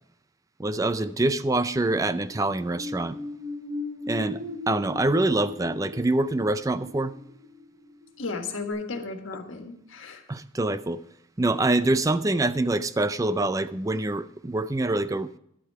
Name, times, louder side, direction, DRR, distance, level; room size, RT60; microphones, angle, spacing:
voice 1, 0.6-3.2 4.0-7.1 10.3-11.0 11.4-15.3, right 2 dB, 15° right, 0.4 m, -25 dB
sound 1, 2.1-8.3 8.7-8.8, left 2 dB, 85° right, 5.2 m, -38 dB
voice 2, 8.2-10.2, left 3 dB, 90° left, 1.6 m, -34 dB
11.5 x 8.1 x 5.5 m
head